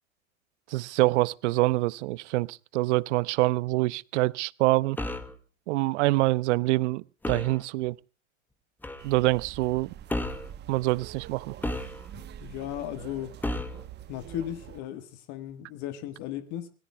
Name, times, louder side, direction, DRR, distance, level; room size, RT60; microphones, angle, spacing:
voice 1, 0.7-5.0 5.7-8.0 9.0-9.9 10.7-11.5, right 20 dB, 60° right, 0.7 m, -25 dB
sound 1, 5.0-5.4 7.2-7.6 8.8-9.1 10.1-10.5 11.6-12.3 13.4-13.8, left 1 dB, 5° left, 1.0 m, -32 dB
sound 2, 9.0-14.8, right 11 dB, 25° right, 0.9 m, -45 dB
voice 2, 12.4-13.4 14.1-16.7, left 12 dB, 45° left, 1.5 m, -36 dB
26.5 x 18.0 x 2.2 m
hypercardioid pair, 115°, 41 cm